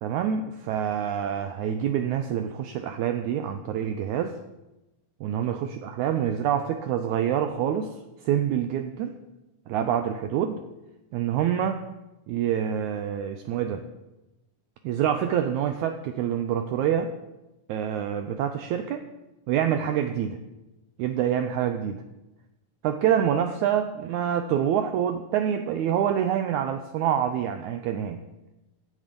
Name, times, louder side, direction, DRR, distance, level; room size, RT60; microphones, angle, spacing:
voice 1, 0.0-4.4 5.2-7.9 8.2-9.2 9.7-10.6 11.1-11.8 12.3-13.8 14.8-17.1 17.7-19.1 19.5-20.4 21.0-22.0 22.8-28.2, right 9 dB, 85° right, 8 dB, 1.7 m, -26 dB
14.5 x 7.4 x 5.2 m, 1.0 s
omnidirectional pair, 4.0 m